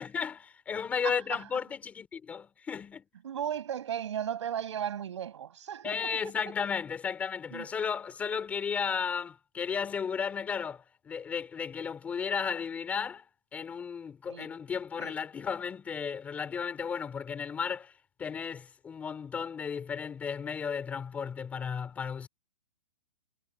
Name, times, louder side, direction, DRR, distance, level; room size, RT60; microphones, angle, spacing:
voice 1, 0.0-3.0 5.8-13.2 13.5-17.9 18.2-22.3, left 6 dB, 10° left, 4.8 m, -34 dB
voice 2, 1.0-1.4 3.2-6.3 7.5-7.7 14.3-14.5 15.0-15.1, right 9 dB, 50° right, 6.4 m, -36 dB
hypercardioid pair, 180°, 19 cm